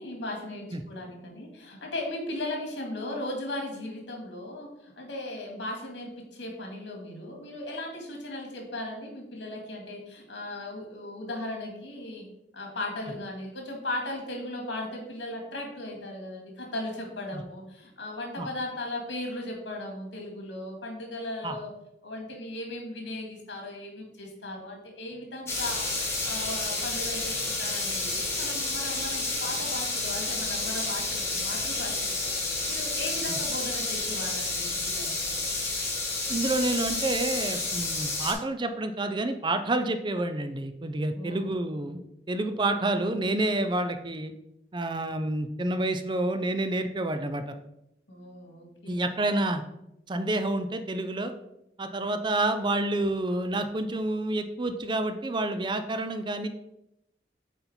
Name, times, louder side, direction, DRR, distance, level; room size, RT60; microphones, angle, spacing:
voice 1, 0.0-12.3 12.5-21.7 22.0-25.9 26.2-35.2 41.1-41.5 48.1-49.0, left 1 dB, 85° left, 1 dB, 2.1 m, -37 dB
sound 1, 25.5-38.3, left 2 dB, 15° left, 1.6 m, -30 dB
voice 2, 36.3-42.0 42.3-44.3 44.7-47.5 48.9-49.6 50.1-51.3 51.8-56.5, right 2 dB, 25° right, 9 dB, 0.5 m, -28 dB
7.9 x 4.1 x 4.4 m, 0.84 s
head